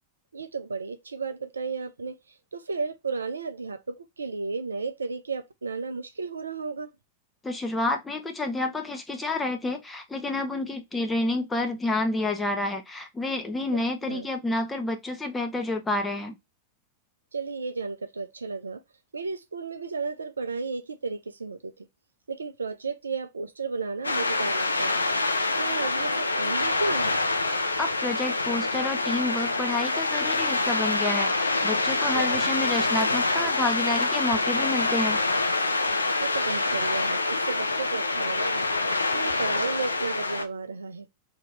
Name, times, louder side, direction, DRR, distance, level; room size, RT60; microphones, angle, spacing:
voice 1, 0.3-6.9 14.0-14.3 17.3-18.8 19.1-21.9 22.3-25.1 25.6-27.2 32.1-32.6 36.2-41.1, right 4 dB, 75° right, 0.5 m, -33 dB
voice 2, 7.4-16.4 27.8-35.2, left 2 dB, 10° left, 1.0 m, -29 dB
sound 1, 24.0-40.4, left 2 dB, 80° left, 0.6 m, -26 dB
3.0 x 2.8 x 3.9 m
figure-of-eight pair, 90°, 0 cm